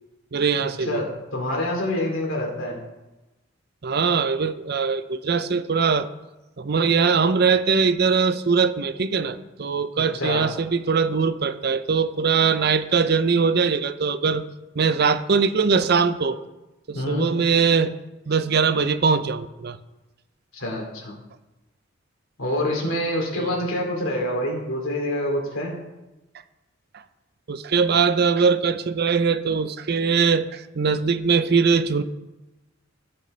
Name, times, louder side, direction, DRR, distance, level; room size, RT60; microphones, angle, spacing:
voice 1, 0.3-1.0 3.8-6.1 6.6-14.4 14.8-16.4 16.9-17.9 18.3-19.8 23.3-23.6 27.5-32.0, right 5 dB, 55° right, 12 dB, 0.6 m, -21 dB
voice 2, 0.9-2.8 10.2-10.4 16.9-17.3 20.5-21.1 22.4-25.8, left 1 dB, 85° left, 0 dB, 2.8 m, -26 dB
17.0 x 6.6 x 3.3 m, 1.0 s
head